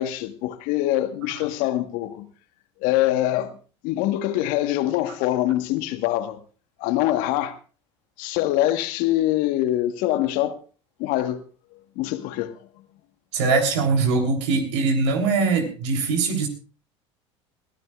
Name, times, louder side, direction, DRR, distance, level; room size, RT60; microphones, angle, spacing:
voice 1, 0.0-2.3 2.8-3.6 3.8-6.4 6.8-7.5 8.2-10.6 11.0-11.4 11.7-12.5, left 14 dB, 65° left, 1.4 m, -24 dB
voice 2, 13.3-16.5, right 4 dB, 80° right, 3.4 m, -22 dB
21.0 x 15.0 x 2.4 m
hypercardioid pair, 75°, 15 cm